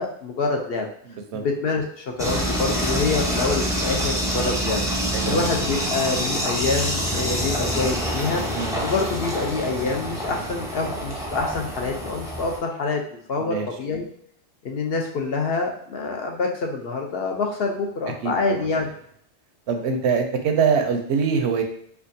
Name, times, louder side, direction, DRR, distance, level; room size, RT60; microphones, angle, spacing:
voice 1, 0.0-0.9 1.3-4.8 5.2-8.4 8.8-13.0 13.3-14.0 14.6-18.9, left 4 dB, 65° left, 2 dB, 0.8 m, -26 dB
voice 2, 1.1-1.4 5.1-5.4 8.5-8.8 13.4-13.7 18.2-18.7 19.7-21.6, right 6 dB, 75° right, 4 dB, 0.8 m, -24 dB
sound 1, 2.2-12.6, equal, 5° right, 0.4 m, -26 dB
4.5 x 2.4 x 2.6 m, 0.66 s
omnidirectional pair, 1.2 m